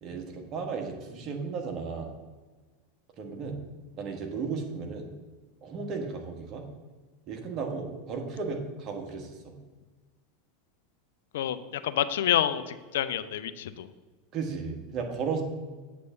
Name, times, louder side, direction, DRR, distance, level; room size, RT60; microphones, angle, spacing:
voice 1, 0.0-2.1 3.2-3.6 3.9-5.1 5.6-6.6 7.3-9.5 14.3-15.4, right 5 dB, 45° right, 3 dB, 1.4 m, -34 dB
voice 2, 11.3-13.9, left 11 dB, 70° left, 12 dB, 0.4 m, -28 dB
7.9 x 3.4 x 6.5 m, 1.3 s
hypercardioid pair, 90°, 0 cm